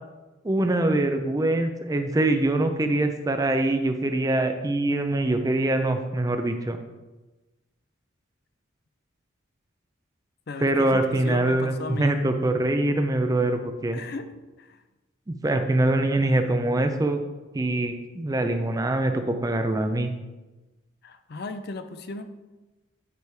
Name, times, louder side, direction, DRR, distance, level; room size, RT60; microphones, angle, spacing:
voice 1, 0.4-6.8 10.6-14.0 15.3-17.2 17.5-20.1, right 2 dB, 15° right, 7 dB, 0.4 m, -24 dB
voice 2, 10.5-12.2 13.9-14.8 21.0-22.2, left 3 dB, 50° left, 9 dB, 0.5 m, -36 dB
9.3 x 3.4 x 4.7 m, 1.1 s
head